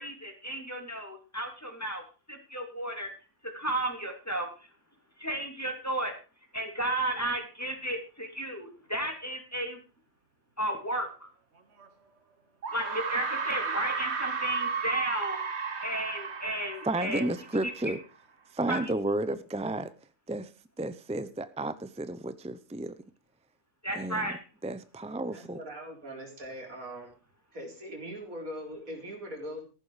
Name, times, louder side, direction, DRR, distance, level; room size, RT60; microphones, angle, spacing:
voice 1, 0.0-2.0 2.3-3.1 3.5-4.5 5.2-6.1 6.5-9.8 10.6-11.3 12.7-15.4 15.8-17.2 17.6-17.9 18.7-18.8 23.8-24.4, right 1 dB, 10° left, 3 dB, 2.9 m, -33 dB
sound 1, 11.8-11.9 12.6-17.8, right 5 dB, 50° right, 1.5 m, -33 dB
voice 2, 16.8-18.0 18.5-19.9 20.3-20.5 20.8-22.9 23.9-24.3 24.6-25.6, right 2 dB, 10° right, 13 dB, 0.3 m, -32 dB
voice 3, 25.3-27.1 27.5-29.6, equal, 65° right, 2 dB, 4.5 m, -41 dB
14.5 x 11.5 x 5.0 m, 0.34 s
omnidirectional pair, 1.6 m